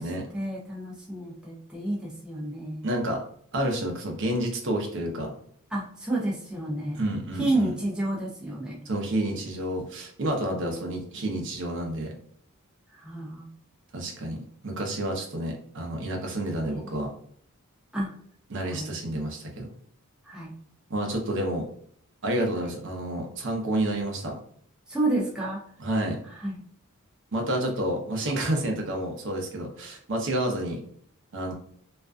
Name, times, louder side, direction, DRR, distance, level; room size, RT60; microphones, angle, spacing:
voice 1, 0.3-2.9 5.7-7.1 7.4-8.8 10.5-10.8 12.9-13.5 17.9-18.1 18.7-18.9 20.3-20.5 22.7-22.8 24.9-25.6 26.4-26.6, right 2 dB, 5° right, -4 dB, 0.4 m, -30 dB
voice 2, 2.8-3.2 3.5-5.3 6.9-7.7 8.9-12.1 13.9-17.1 18.5-19.7 20.9-21.7 22.2-24.3 25.8-26.2 27.3-30.8 31.3-31.5, right 1 dB, 55° right, 1 dB, 0.6 m, -29 dB
2.4 x 2.2 x 2.3 m, 0.62 s
head